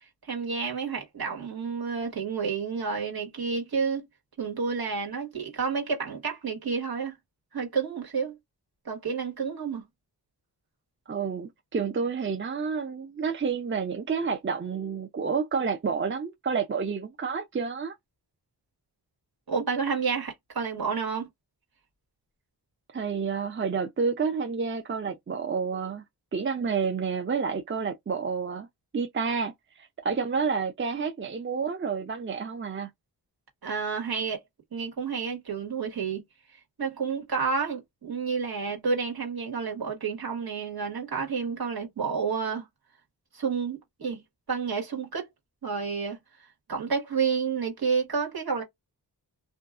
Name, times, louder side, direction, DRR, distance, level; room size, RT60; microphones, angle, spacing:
voice 1, 0.2-4.1 4.4-7.2 7.5-8.4 8.8-9.8 19.5-21.3 33.6-34.4 34.7-36.2 36.8-42.7 43.3-44.2 44.5-45.3 45.6-46.2 46.7-48.6, right 5 dB, 65° right, 1.5 m, -30 dB
voice 2, 11.1-17.9 22.9-26.0 26.3-28.7 28.9-32.9, right 5 dB, 30° right, 0.5 m, -29 dB
2.5 x 2.3 x 2.4 m
wide cardioid pair, 65°, 41 cm